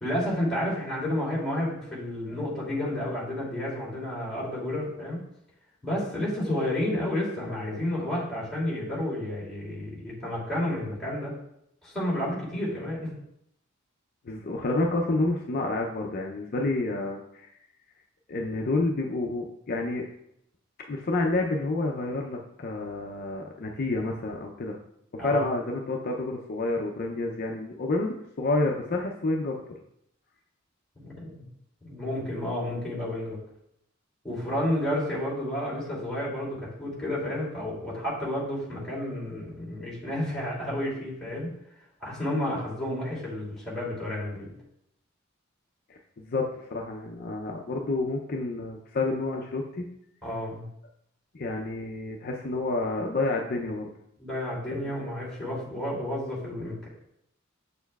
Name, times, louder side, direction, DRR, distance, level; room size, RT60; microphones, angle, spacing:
voice 1, 0.0-5.2 5.8-11.3 11.8-13.1 25.2-25.4 31.0-31.4 31.8-33.4 34.2-41.5 42.0-44.5 50.2-50.7 54.2-56.9, left 1 dB, ahead, -7 dB, 2.6 m, -31 dB
voice 2, 14.2-17.5 18.3-20.0 20.9-24.8 25.1-29.6 45.9-49.9 51.3-53.9 54.7-54.9, left 2 dB, 45° left, 0 dB, 0.5 m, -29 dB
7.0 x 6.7 x 2.3 m, 0.77 s
head